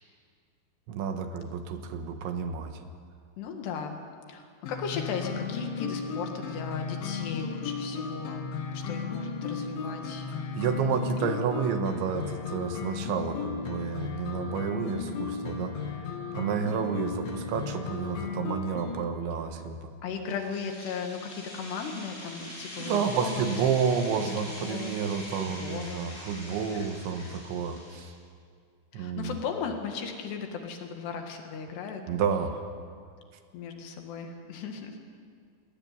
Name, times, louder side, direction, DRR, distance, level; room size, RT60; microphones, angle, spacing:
voice 1, 0.9-2.8 10.5-15.8 16.3-19.9 22.8-28.1 28.9-29.4 32.1-32.6, right 6 dB, 80° right, 7 dB, 3.7 m, -30 dB
voice 2, 3.4-4.0 4.3-10.4 11.2-11.3 20.0-23.5 24.2-25.0 25.3-26.1 26.5-26.9 27.2-27.4 28.9-32.0 33.5-35.0, left 6 dB, 70° left, 4 dB, 3.8 m, -37 dB
sound 1, 4.7-19.1, left 5 dB, 90° left, 4.2 m, -35 dB
sound 2, 20.3-28.2, left 1 dB, 15° left, 6.2 m, -43 dB
20.0 x 18.5 x 9.6 m, 2.2 s
omnidirectional pair, 5.3 m